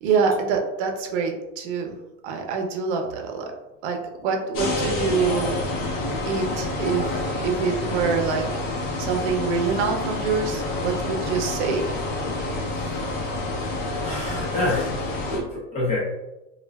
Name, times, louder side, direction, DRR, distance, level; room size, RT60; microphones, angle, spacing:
voice 1, 0.0-2.0 2.2-3.5 3.8-5.6 6.3-8.5 9.0-12.0, right 5 dB, 60° right, 3 dB, 0.7 m, -25 dB
sound 1, 4.5-15.4, left 2 dB, 50° left, 0.8 m, -28 dB
voice 2, 14.0-14.9 15.3-16.0, left 2 dB, 15° left, -5 dB, 0.6 m, -26 dB
3.2 x 2.4 x 2.2 m, 0.99 s
supercardioid pair, 140°, 39 cm